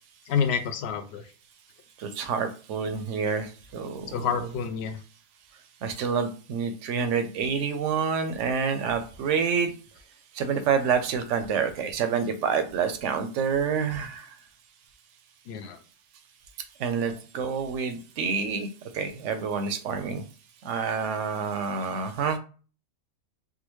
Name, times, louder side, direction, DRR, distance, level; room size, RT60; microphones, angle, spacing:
voice 1, 0.3-1.3 4.1-5.0 15.5-15.8, left 7 dB, 65° left, 7 dB, 0.7 m, -28 dB
voice 2, 2.0-4.2 5.8-9.7 10.3-14.3 16.8-18.7 18.9-20.2 20.6-22.4, right 6 dB, 70° right, 8 dB, 0.8 m, -28 dB
3.5 x 2.2 x 3.0 m, 0.38 s
omnidirectional pair, 1.4 m